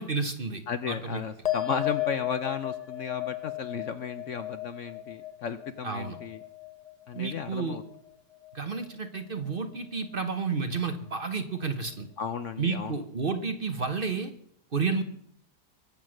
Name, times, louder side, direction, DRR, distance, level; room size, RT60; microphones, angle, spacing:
voice 1, 0.0-0.6 0.9-1.2 5.8-6.2 7.1-7.8 8.5-12.1 12.6-14.3 14.7-15.0, right 4 dB, 40° right, 7 dB, 1.0 m, -31 dB
voice 2, 0.7-6.4 7.1-7.8 12.2-13.0, left 6 dB, 60° left, 10 dB, 0.9 m, -34 dB
sound 1, 1.5-8.1 8.4-9.1, left 14 dB, 35° left, 0.7 m, -35 dB
23.0 x 7.7 x 6.4 m, 0.69 s
omnidirectional pair, 1.7 m